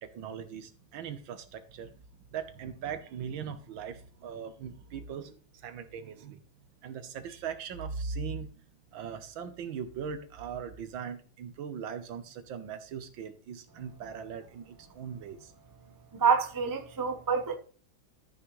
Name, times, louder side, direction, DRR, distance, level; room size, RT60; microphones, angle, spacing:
voice 1, 0.0-2.0 2.3-6.4 6.8-8.5 8.9-15.5, right 6 dB, 70° right, 1.6 m, -40 dB
voice 2, 16.1-17.6, right 6 dB, 30° right, 0.3 m, -27 dB
13.5 x 6.0 x 3.2 m
omnidirectional pair, 2.3 m